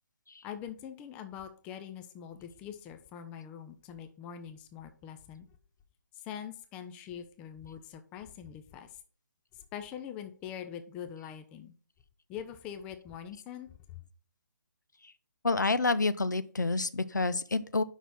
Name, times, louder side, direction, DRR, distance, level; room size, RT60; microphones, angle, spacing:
voice 1, 0.4-5.5 6.1-9.0 9.5-11.7 12.3-14.0, left 9 dB, 10° left, 8 dB, 0.3 m, -43 dB
voice 2, 15.4-17.8, left 3 dB, 70° left, 13 dB, 0.5 m, -28 dB
5.5 x 4.0 x 5.9 m, 0.43 s
figure-of-eight pair, 140°, 10 cm